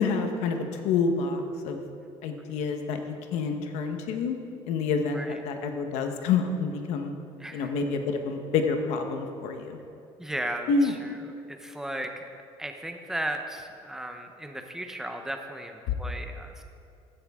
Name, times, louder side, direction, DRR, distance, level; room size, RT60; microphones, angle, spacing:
voice 1, 0.0-1.8 2.2-4.4 4.7-7.1 7.5-9.8 10.7-10.9 15.9-16.0, left 5 dB, 90° left, 5 dB, 1.1 m, -28 dB
voice 2, 7.4-7.7 10.2-11.2 11.5-12.2 12.6-16.6, right 1 dB, 5° right, 5 dB, 0.7 m, -35 dB
15.0 x 10.0 x 3.6 m, 2.5 s
cardioid pair, 165°, 11 cm